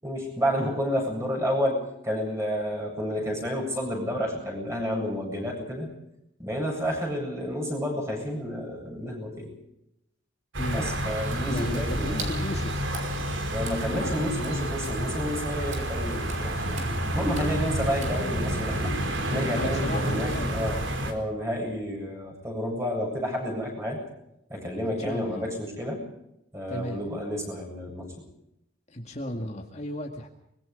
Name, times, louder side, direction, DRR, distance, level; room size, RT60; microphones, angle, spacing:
voice 1, 0.0-5.9 6.4-9.5 10.7-12.3 13.5-16.7 17.1-19.0 19.3-24.0 24.5-26.0 26.5-28.1, equal, 15° right, 1 dB, 7.9 m, -30 dB
sound 1, 10.5-21.1, right 1 dB, 70° right, 4.0 m, -29 dB
voice 2, 10.6-10.9 11.5-12.8 16.7-17.1 19.5-20.5 24.8-25.4 26.7-27.0 28.9-30.3, left 1 dB, 35° left, 2 dB, 2.0 m, -35 dB
Water / Splash splatter, 11.5-18.7, right 3 dB, 35° right, 4.8 m, -44 dB
24.5 x 22.0 x 5.3 m, 0.81 s
head